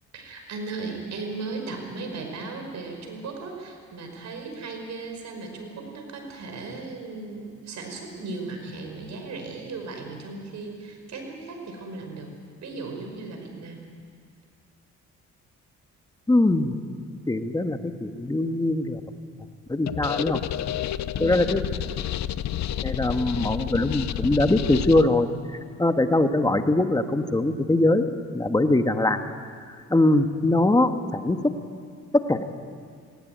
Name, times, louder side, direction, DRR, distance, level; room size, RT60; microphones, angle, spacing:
voice 1, 0.1-12.4 12.6-13.8 21.1-21.5, right 3 dB, 65° right, 3 dB, 5.3 m, -36 dB
voice 2, 16.3-16.8 17.3-19.0 19.7-20.4 21.2-21.6 22.8-25.3 25.8-29.2 29.9-31.4 32.3-32.4, left 2 dB, 15° left, 7 dB, 1.5 m, -22 dB
sound 1, 19.9-25.0, left 11 dB, 65° left, 0.7 m, -30 dB
19.5 x 18.0 x 9.4 m, 2.2 s
cardioid pair, 90°, 30 cm